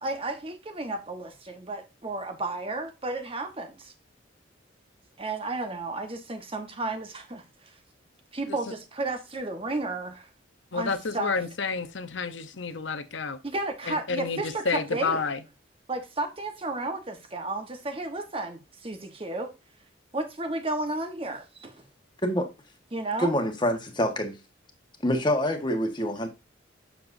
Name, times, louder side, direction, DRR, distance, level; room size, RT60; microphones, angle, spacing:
voice 1, 0.0-3.9 5.2-7.7 8.3-10.3 10.7-11.3 13.4-15.2 15.9-19.5 20.1-21.8 22.9-23.3, right 2 dB, 30° right, 1.2 m, -33 dB
voice 2, 10.7-13.4 13.9-15.4, left 4 dB, 65° left, 0.8 m, -30 dB
voice 3, 23.2-24.4 25.0-26.3, equal, 25° left, 1.5 m, -26 dB
8.8 x 6.8 x 2.7 m
head